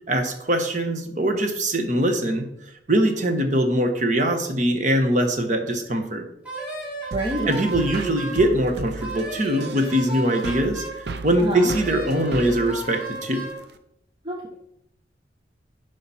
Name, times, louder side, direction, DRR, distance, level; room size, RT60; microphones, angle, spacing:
voice 1, 0.1-2.5 2.9-6.2 7.5-13.5, right 1 dB, 45° right, 5 dB, 1.1 m, -22 dB
Wind instrument woodwind instrument, 6.4-8.4 9.0-11.0 11.6-13.6, right 2 dB, 5° right, 3.0 m, -34 dB
voice 2, 7.1-7.5 11.4-11.7 14.2-14.6, right 1 dB, 30° right, 0 dB, 0.8 m, -27 dB
sound 1, 7.1-13.8, right 3 dB, 65° right, 0.6 m, -35 dB
11.5 x 5.0 x 4.2 m, 0.79 s
head